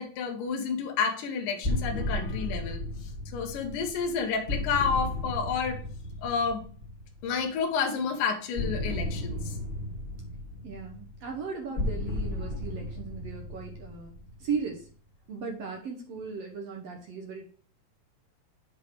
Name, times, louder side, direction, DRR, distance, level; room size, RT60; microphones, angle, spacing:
voice 1, 0.0-5.8 6.2-6.6 7.2-9.6, left 6 dB, 70° left, 4 dB, 2.5 m, -30 dB
sound 1, 1.6-7.4 8.5-14.8, left 1 dB, 25° left, 1.4 m, -34 dB
voice 2, 10.6-14.9 15.3-17.4, right 5 dB, 70° right, 1 dB, 1.5 m, -37 dB
8.2 x 3.7 x 4.5 m, 0.42 s
omnidirectional pair, 4.1 m